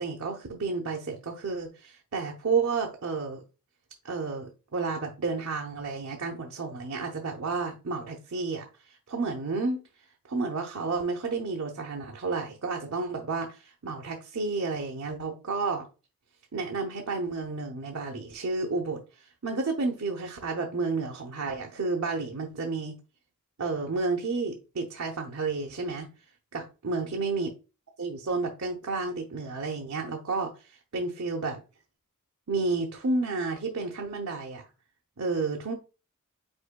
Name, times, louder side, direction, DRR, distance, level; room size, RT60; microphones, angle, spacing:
voice 1, 0.0-3.4 4.0-8.7 9.1-9.8 10.3-15.9 16.5-19.0 19.4-22.9 23.6-26.1 26.5-27.5 28.0-31.6 32.5-34.6 35.2-35.7, right 3 dB, 80° right, 0.8 m, -31 dB
5.3 x 4.4 x 2.2 m
head